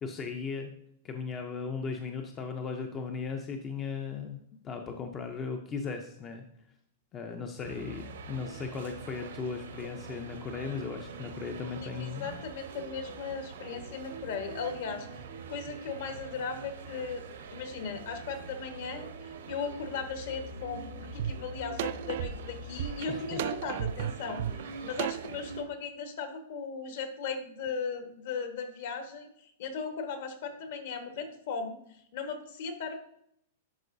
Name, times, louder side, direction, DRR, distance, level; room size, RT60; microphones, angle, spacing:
voice 1, 0.0-0.7 1.0-4.4 4.6-6.4 7.1-12.4 23.1-23.4, left 5 dB, 20° left, 5 dB, 0.5 m, -37 dB
sound 1, 7.6-25.6, right 4 dB, 90° right, 1.1 m, -44 dB
voice 2, 11.8-15.1 15.5-17.2 17.5-32.9, left 5 dB, 55° left, 6 dB, 1.3 m, -37 dB
sound 2, 21.2-21.3 21.8-25.4, right 11 dB, 55° right, 0.3 m, -34 dB
11.0 x 4.5 x 2.6 m, 0.71 s
supercardioid pair, 165°, 0 cm